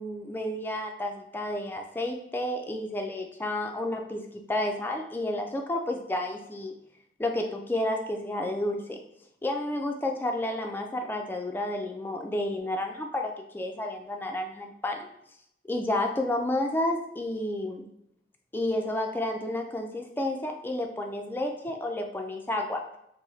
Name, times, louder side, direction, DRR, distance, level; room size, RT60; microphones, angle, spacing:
voice 1, 0.0-6.7 7.2-9.0 9.4-15.1 15.7-17.9 18.5-22.8, left 1 dB, 10° left, 3 dB, 0.3 m, -31 dB
4.7 x 2.0 x 2.7 m, 0.77 s
head